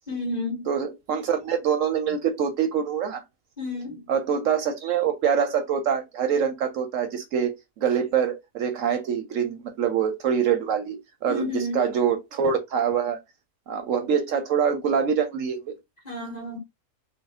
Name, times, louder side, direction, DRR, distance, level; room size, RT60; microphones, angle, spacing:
voice 1, 0.1-0.7 3.6-4.0 11.3-11.9 16.0-16.6, left 2 dB, 30° left, 1.3 m, -31 dB
voice 2, 0.7-3.2 4.1-13.2 13.7-15.7, right 7 dB, 65° right, 0.9 m, -25 dB
3.7 x 2.3 x 3.4 m
omnidirectional pair, 1.5 m